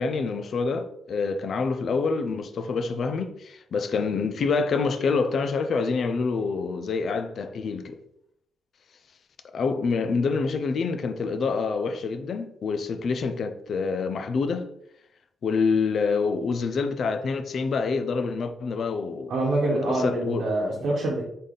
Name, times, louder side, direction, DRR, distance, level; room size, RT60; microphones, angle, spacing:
voice 1, 0.0-8.0 9.5-14.7 15.4-19.4 19.7-20.5, left 4 dB, 50° left, 0.4 m, -27 dB
voice 2, 19.3-21.2, right 2 dB, 65° right, 1.0 m, -25 dB
3.8 x 3.3 x 4.0 m
wide cardioid pair, 170°, 0 cm